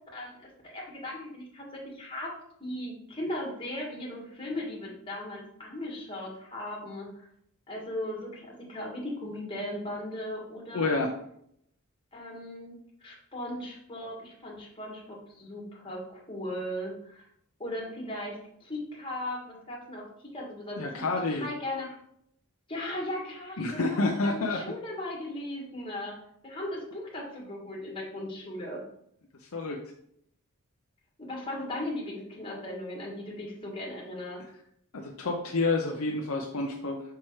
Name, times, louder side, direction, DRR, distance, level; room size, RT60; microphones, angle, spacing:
voice 1, 0.6-2.3 2.6-7.3 7.7-11.1 12.1-12.8 13.0-17.2 17.6-22.0 22.7-26.2 26.4-28.8 31.2-34.4, left 1 dB, 25° left, -2 dB, 1.9 m, -37 dB
voice 2, 10.7-11.1 20.8-21.5 23.6-24.6 29.5-29.8 34.9-37.0, left 3 dB, 70° left, 1 dB, 0.7 m, -29 dB
5.9 x 4.3 x 4.8 m, 0.70 s
head